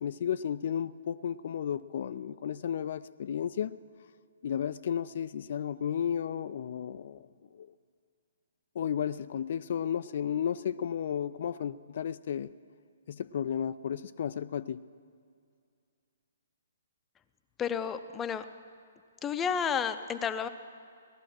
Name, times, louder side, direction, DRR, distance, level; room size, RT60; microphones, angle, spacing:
voice 1, 0.0-3.8 4.4-7.3 7.5-7.7 8.8-12.5 13.1-14.8, left 8 dB, 50° left, 14 dB, 0.3 m, -33 dB
voice 2, 17.6-18.4 19.2-20.5, left 7 dB, 15° left, 10 dB, 0.6 m, -31 dB
17.5 x 12.0 x 6.1 m, 2.3 s
figure-of-eight pair, 125°, 0 cm